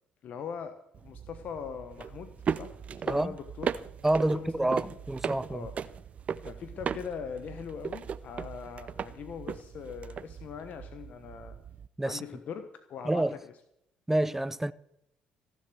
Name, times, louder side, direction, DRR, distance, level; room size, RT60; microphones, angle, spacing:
voice 1, 0.2-3.8 4.3-4.9 5.5-5.7 6.4-11.6 12.0-13.5, left 7 dB, 60° left, 1.2 m, -41 dB
sound 1, 0.9-11.9, right 7 dB, 50° right, 0.7 m, -38 dB
voice 2, 4.0-5.7 12.0-12.2 13.0-13.3 14.1-14.7, right 1 dB, 10° right, 0.7 m, -28 dB
15.5 x 7.3 x 9.2 m
hypercardioid pair, 60°, 3 cm